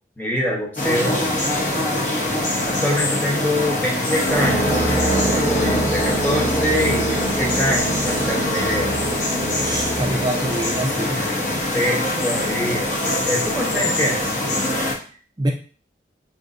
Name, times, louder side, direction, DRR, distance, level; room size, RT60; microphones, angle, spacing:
voice 1, 0.2-1.3 2.6-4.6 5.0-8.9 11.7-12.9 13.2-14.3, equal, 10° left, -2 dB, 0.8 m, -24 dB
sound 1, 0.8-14.9, left 1 dB, 45° left, 0.8 m, -23 dB
sound 2, 4.3-11.6, right 1 dB, 75° left, 1.6 m, -25 dB
voice 2, 9.6-11.2 15.4-15.5, right 1 dB, 25° right, 2 dB, 0.4 m, -25 dB
5.1 x 2.7 x 2.5 m, 0.40 s
head